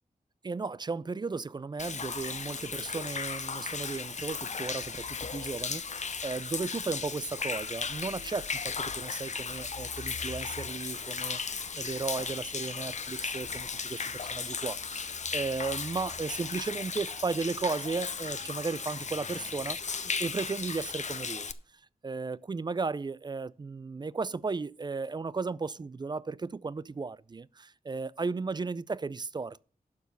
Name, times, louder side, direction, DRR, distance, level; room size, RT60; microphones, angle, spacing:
voice 1, 0.4-21.5 22.0-29.6, right 4 dB, 30° right, 0.3 m, -35 dB
Human voice / Rain / Stream, 1.8-21.5, left 5 dB, 50° left, 0.6 m, -36 dB
12.0 x 4.6 x 6.8 m
wide cardioid pair, 80°, 15 cm